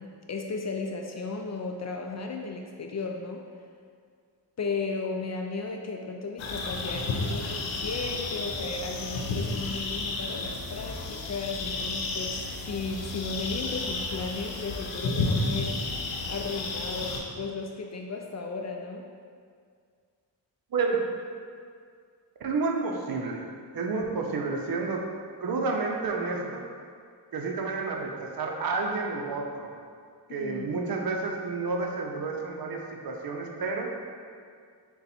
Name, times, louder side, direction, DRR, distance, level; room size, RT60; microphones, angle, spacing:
voice 1, 0.0-3.4 4.6-15.7 16.3-19.0 30.3-30.7, left 4 dB, 40° left, 2 dB, 0.4 m, -35 dB
sound 1, 6.4-17.2, left 3 dB, 85° left, 0.6 m, -32 dB
voice 2, 20.7-21.0 22.4-23.4 23.7-25.0 25.4-26.6 27.3-29.7 30.3-33.9, right 4 dB, 50° right, 1 dB, 0.6 m, -30 dB
3.9 x 2.3 x 4.1 m, 2.1 s
supercardioid pair, 45°, 45 cm